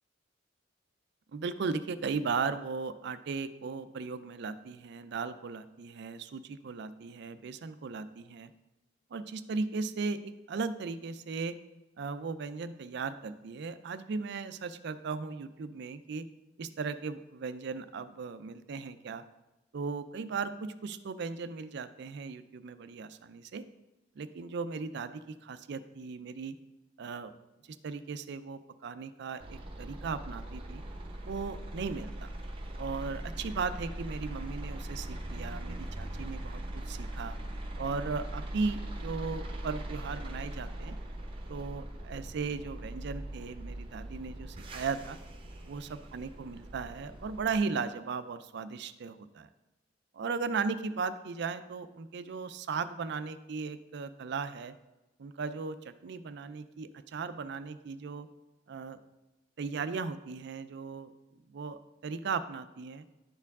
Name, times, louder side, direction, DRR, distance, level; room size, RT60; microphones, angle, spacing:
voice 1, 1.3-8.5 9.1-11.5 12.0-16.3 16.6-19.2 19.7-23.6 24.2-26.6 27.0-27.3 27.7-30.8 31.3-32.3 32.8-37.4 37.8-41.0 41.5-45.2 45.7-49.5 50.2-54.7 55.2-58.3 58.7-59.0 59.6-61.1 61.5-63.0, right 4 dB, 60° right, 12 dB, 0.4 m, -37 dB
sound 1, 29.4-47.6, right 1 dB, 30° right, 0.8 m, -41 dB
10.5 x 4.5 x 3.6 m, 1.0 s
head